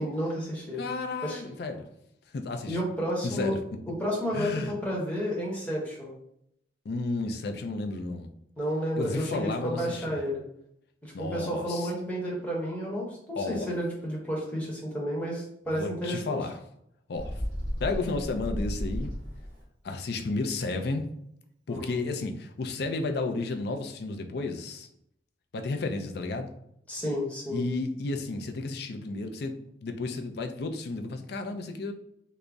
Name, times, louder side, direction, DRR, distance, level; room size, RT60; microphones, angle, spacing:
voice 1, 0.0-0.8 1.2-1.4 2.7-3.5 3.9-6.1 8.6-10.4 11.0-16.4 21.7-22.0 26.9-27.6, equal, 10° left, -4 dB, 1.0 m, -31 dB
voice 2, 0.8-1.9 2.3-2.8 3.2-3.6 4.3-4.7 6.8-8.3 9.0-10.2 11.1-11.9 13.3-13.7 15.8-16.6 17.1-17.4 17.8-19.1 19.8-21.1 21.7-24.9 25.5-26.5 27.5-31.9, left 3 dB, 60° left, 5 dB, 0.4 m, -32 dB
Bird, 17.2-19.6, equal, 65° right, 1.3 m, -33 dB
3.8 x 2.0 x 3.4 m, 0.75 s
head